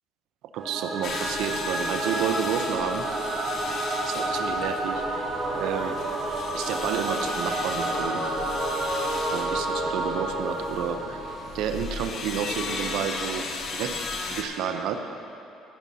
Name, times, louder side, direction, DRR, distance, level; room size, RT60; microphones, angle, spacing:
voice 1, 0.5-3.1 4.1-5.3 5.5-6.0 6.5-8.2 9.3-11.2 11.5-13.4 13.7-14.0 14.3-15.0, right 8 dB, 80° right, 7 dB, 0.7 m, -30 dB
Singing / Musical instrument, 0.6-11.8, right 1 dB, 30° right, 1.8 m, -30 dB
sound 1, 1.0-14.4, left 4 dB, 50° left, 1.0 m, -36 dB
15.5 x 9.3 x 2.8 m, 2.8 s
cardioid pair, 125°, 0 cm